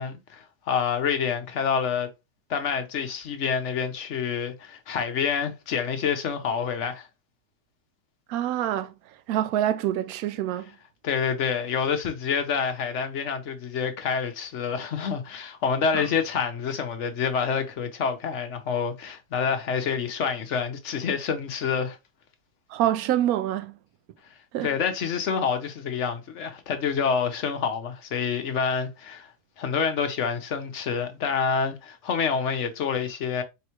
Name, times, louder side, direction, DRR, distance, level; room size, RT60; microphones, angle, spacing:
voice 1, 0.0-2.1 2.5-7.1 11.0-22.0 24.6-29.3 29.6-33.4, left 6 dB, 55° left, 0.9 m, -27 dB
voice 2, 8.3-8.9 9.3-10.7 15.9-16.0 22.7-23.8 24.5-24.7, right 12 dB, 70° right, 0.9 m, -26 dB
4.5 x 3.5 x 2.9 m
omnidirectional pair, 1.9 m